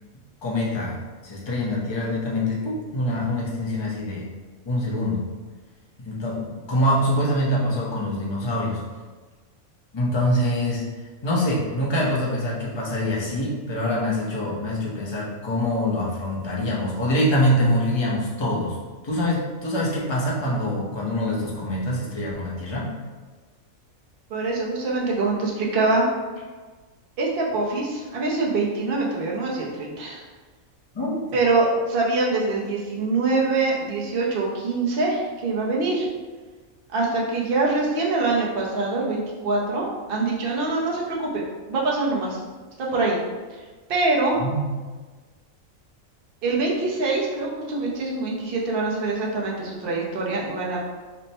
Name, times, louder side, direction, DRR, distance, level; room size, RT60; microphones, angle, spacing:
voice 1, 0.4-4.2 4.7-5.2 6.0-8.8 9.9-10.8 11.2-18.8 19.0-22.9 30.9-31.2 44.4-44.7, left 1 dB, 30° left, -5 dB, 0.5 m, -24 dB
voice 2, 24.3-26.0 27.2-30.2 31.3-36.1 36.9-41.4 41.7-42.4 42.8-43.2 43.9-44.4 46.4-50.8, right 3 dB, 50° right, -3 dB, 0.8 m, -24 dB
3.3 x 2.1 x 4.1 m, 1.3 s
omnidirectional pair, 1.5 m